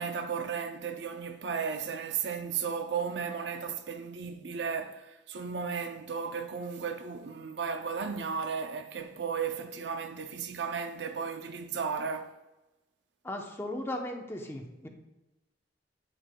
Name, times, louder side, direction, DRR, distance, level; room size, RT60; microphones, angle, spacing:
voice 1, 0.0-12.4, right 6 dB, 70° right, 0.5 m, -35 dB
voice 2, 13.2-14.9, left 1 dB, 15° left, 0.8 m, -37 dB
10.0 x 6.6 x 2.2 m
head